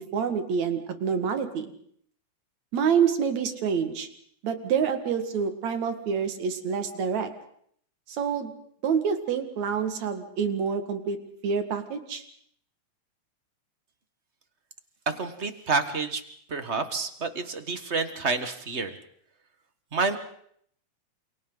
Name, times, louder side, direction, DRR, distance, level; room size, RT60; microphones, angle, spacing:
voice 1, 0.1-1.7 2.7-4.1 4.4-7.3 8.1-8.5 8.8-11.2 11.4-12.2, right 6 dB, 70° right, 7 dB, 3.2 m, -27 dB
voice 2, 15.0-16.2 16.5-18.9 19.9-20.2, right 4 dB, 35° right, 9 dB, 1.1 m, -28 dB
29.0 x 28.0 x 4.0 m, 0.65 s
omnidirectional pair, 3.4 m